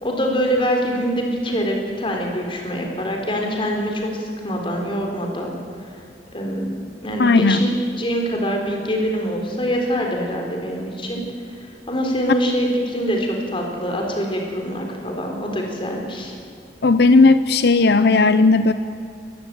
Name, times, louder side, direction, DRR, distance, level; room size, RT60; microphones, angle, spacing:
voice 1, 0.0-5.5 6.3-6.7 7.0-7.7 8.0-11.2 11.6-16.3, equal, 30° left, 1 dB, 4.1 m, -24 dB
voice 2, 7.2-7.6 16.8-18.7, left 3 dB, 65° left, 12 dB, 0.7 m, -14 dB
21.0 x 15.0 x 9.4 m, 2.6 s
head